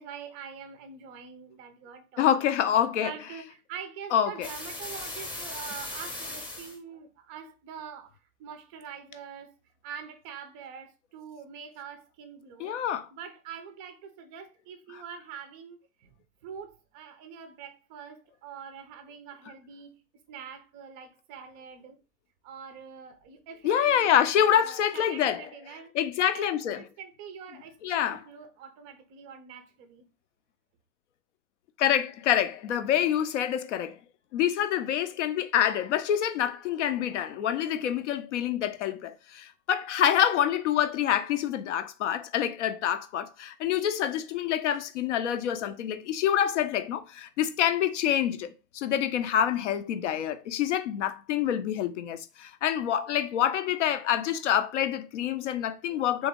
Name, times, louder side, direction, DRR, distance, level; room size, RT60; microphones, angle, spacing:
voice 1, 0.0-2.6 3.0-9.5 9.8-12.8 13.1-16.1 16.4-19.9 20.3-22.0 22.4-25.9 26.3-30.1, right 7 dB, 20° right, 0.5 m, -44 dB
voice 2, 2.2-3.1 4.1-4.5 12.6-13.1 23.6-25.4 25.9-26.8 27.8-28.2 31.8-34.0 34.3-56.3, left 10 dB, 50° left, 0.6 m, -26 dB
sound 1, 4.4-6.8, left 2 dB, 10° left, 0.8 m, -38 dB
3.4 x 3.1 x 3.5 m
figure-of-eight pair, 110°, 47 cm